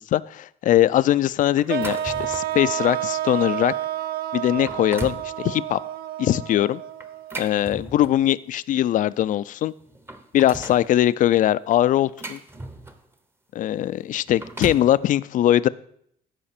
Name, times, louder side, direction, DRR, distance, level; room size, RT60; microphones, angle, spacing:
voice 1, 0.1-3.7 4.3-5.8 6.2-6.8 7.4-9.7 10.3-12.4 13.5-15.7, left 12 dB, 50° left, 17 dB, 0.4 m, -21 dB
sound 1, 1.6-2.6 3.2-3.4 4.0-4.1 4.5-5.3 7.0-8.3 9.4-9.5 9.8-10.9 11.7-13.1 14.1-14.9, right 2 dB, 15° right, 0.8 m, -37 dB
sound 2, 1.7-7.7, right 11 dB, 70° right, 0.4 m, -30 dB
14.0 x 5.0 x 4.3 m, 0.67 s
cardioid pair, 110°, 17 cm